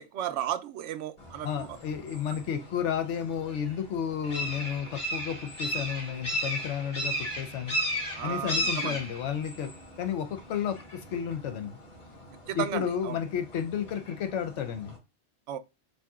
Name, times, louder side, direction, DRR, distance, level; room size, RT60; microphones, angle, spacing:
voice 1, 0.0-1.8 8.1-9.0 12.5-13.2 15.5-15.6, right 10 dB, 85° right, 0.9 m, -34 dB
sound 1, 1.2-15.0, equal, 60° left, 2.2 m, -36 dB
voice 2, 1.4-7.8 8.2-9.7 10.0-11.8 12.5-14.9, left 8 dB, 80° left, 1.0 m, -32 dB
6.6 x 2.8 x 2.3 m
omnidirectional pair, 1.2 m